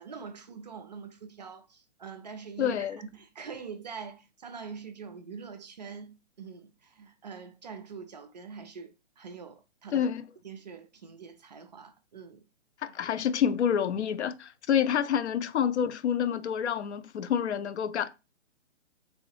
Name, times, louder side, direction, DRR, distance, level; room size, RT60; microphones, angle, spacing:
voice 1, 0.0-10.1 10.4-12.5, right 5 dB, 40° right, 0.4 m, -44 dB
voice 2, 2.6-3.0 9.9-10.2 12.8-18.1, left 8 dB, 65° left, 0.5 m, -28 dB
3.2 x 2.6 x 3.1 m
hypercardioid pair, 140°, 36 cm